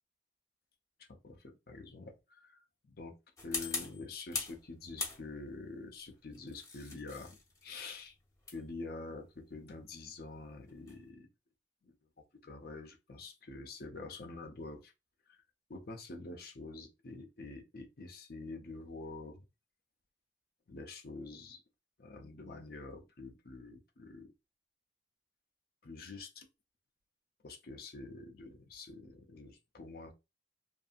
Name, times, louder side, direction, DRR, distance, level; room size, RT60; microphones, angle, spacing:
voice 1, 1.1-3.1 3.4-8.1 8.5-11.3 11.8-11.9 12.4-14.9 15.3-15.4 15.7-19.4 20.7-21.6 22.0-24.3 25.8-26.5 27.4-30.1, left 3 dB, 55° left, 0.6 m, -47 dB
sound 1, 3.4-4.6 5.0-5.6 6.3-11.1, left 4 dB, 20° left, 0.6 m, -42 dB
2.6 x 2.6 x 2.4 m
head